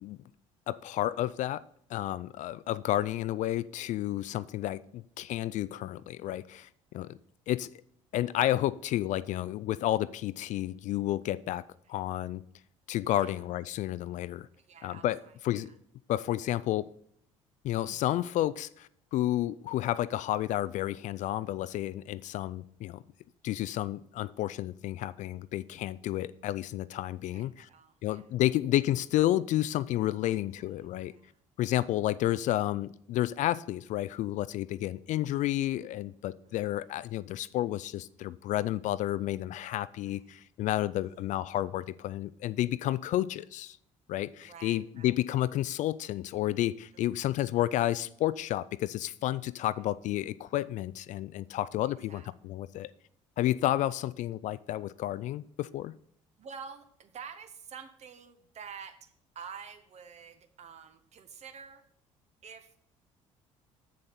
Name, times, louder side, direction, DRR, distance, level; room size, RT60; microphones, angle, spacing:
voice 1, 0.7-1.6 1.9-6.7 6.9-7.2 7.5-7.7 8.1-12.4 12.9-14.5 14.8-15.2 15.4-15.7 16.1-16.9 17.6-23.0 23.4-27.7 28.0-31.1 31.6-43.8 44.1-52.9 53.4-55.9, left 14 dB, 50° left, 17 dB, 0.4 m, -31 dB
voice 2, 13.1-13.4 14.5-15.8 27.3-28.3 30.2-30.7 31.1-31.4 31.9-32.1 36.3-36.7 40.1-40.4 41.0-41.4 44.4-45.4 46.9-47.3 49.7-49.9 51.8-52.3 56.4-61.8 62.4-62.9, right 6 dB, 45° right, 9 dB, 1.1 m, -49 dB
7.7 x 7.2 x 4.1 m, 0.68 s
figure-of-eight pair, 55°, 17 cm